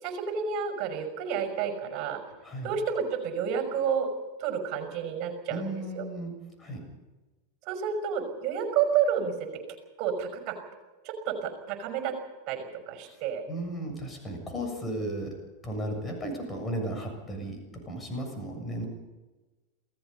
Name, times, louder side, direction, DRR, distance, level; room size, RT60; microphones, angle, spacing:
voice 1, 0.0-2.2 2.6-4.1 4.4-6.1 7.7-9.3 10.0-10.6 11.0-12.2 12.5-13.5, right 7 dB, 40° right, 6 dB, 5.8 m, -30 dB
voice 2, 5.5-6.3 6.6-6.8 13.1-13.2 13.5-15.3 15.6-18.8, right 1 dB, 15° left, 3 dB, 7.1 m, -35 dB
28.0 x 17.5 x 5.5 m, 1.2 s
figure-of-eight pair, 90°, 0 cm